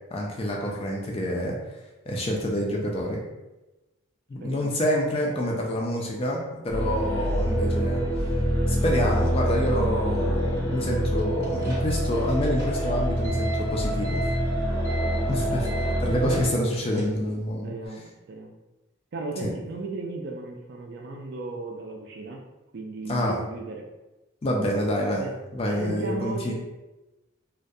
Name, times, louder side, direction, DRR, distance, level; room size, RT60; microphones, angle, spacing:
voice 1, 0.1-1.6 2.1-3.2 4.3-8.0 8.7-14.2 15.2-15.7 16.0-17.7 19.4-19.5 23.1-23.4 24.4-25.2 25.5-26.5, equal, 25° left, -1 dB, 0.3 m, -27 dB
voice 2, 4.4-4.8 14.9-15.9 17.6-18.6 19.1-22.4 22.7-23.9 25.1-25.3 25.8-26.5, right 3 dB, 50° right, 1 dB, 0.3 m, -36 dB
sound 1, 6.7-16.5, equal, 85° left, 0.8 m, -26 dB
sound 2, 11.2-17.4, equal, 15° right, 0.7 m, -40 dB
2.3 x 2.1 x 2.6 m, 1.1 s
head